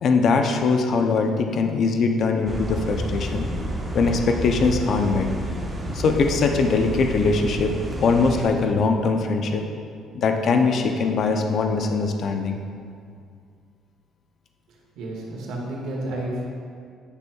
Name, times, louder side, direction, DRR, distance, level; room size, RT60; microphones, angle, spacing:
voice 1, 0.0-3.5 3.9-5.3 5.9-9.6 10.1-12.6, left 4 dB, 60° left, 4 dB, 0.5 m, -21 dB
sound 1, 2.5-8.5, right 1 dB, 20° right, 0.9 m, -30 dB
voice 2, 14.9-16.5, right 1 dB, 80° right, -3 dB, 1.7 m, -31 dB
9.7 x 6.0 x 2.3 m, 2.2 s
cardioid pair, 100°, 0 cm